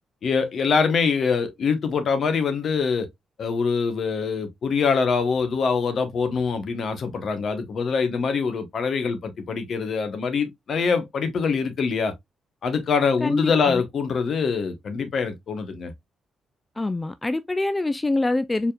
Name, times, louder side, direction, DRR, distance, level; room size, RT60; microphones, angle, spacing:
voice 1, 0.2-3.1 3.4-12.1 12.6-15.9, left 5 dB, 60° left, 1.0 m, -24 dB
voice 2, 13.2-13.8 16.8-18.7, left 2 dB, 20° left, 0.4 m, -25 dB
4.3 x 3.5 x 2.3 m
hypercardioid pair, 45°, 0 cm